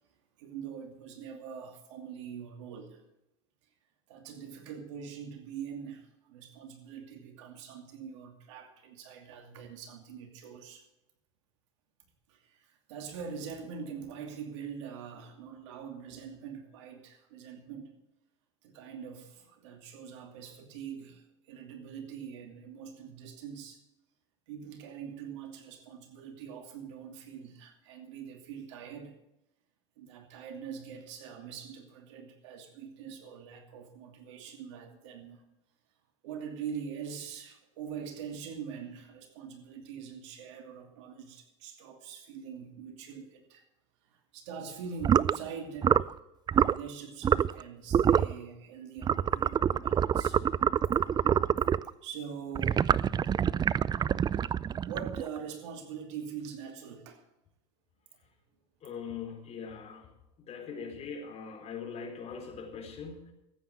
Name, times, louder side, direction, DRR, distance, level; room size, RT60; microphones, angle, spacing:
voice 1, 0.4-3.0 4.1-10.8 12.3-17.9 18.6-23.8 24.5-29.1 30.0-35.4 36.2-43.6 44.0-46.2 46.5-50.4 51.0-51.7 52.0-54.4 54.8-57.2, right 7 dB, 80° right, 2.7 m, -43 dB
sound 1, 45.0-45.4 45.8-46.1 46.5-46.8 47.2-47.6 47.9-48.3 49.0-51.9 52.6-55.4, right 8 dB, 30° right, 0.4 m, -26 dB
voice 2, 58.8-60.1 60.4-63.3, left 6 dB, 45° left, 4.3 m, -41 dB
14.0 x 9.2 x 7.7 m
hypercardioid pair, 90°, 15 cm